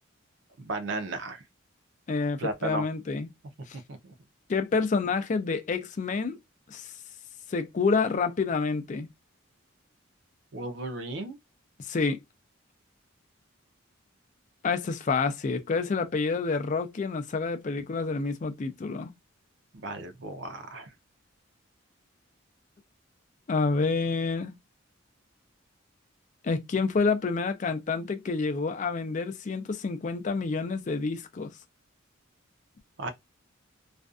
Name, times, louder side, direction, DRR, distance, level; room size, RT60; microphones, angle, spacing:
voice 1, 0.6-1.4 2.4-2.8 3.9-4.1 10.5-11.4 19.7-20.9 33.0-33.1, right 2 dB, 60° right, 0.5 m, -34 dB
voice 2, 2.1-3.3 3.7-3.8 4.5-6.4 6.7-6.9 7.5-9.1 11.8-12.2 14.6-19.1 23.5-24.6 26.4-31.5, left 4 dB, 35° left, 0.4 m, -28 dB
2.4 x 2.3 x 2.4 m
head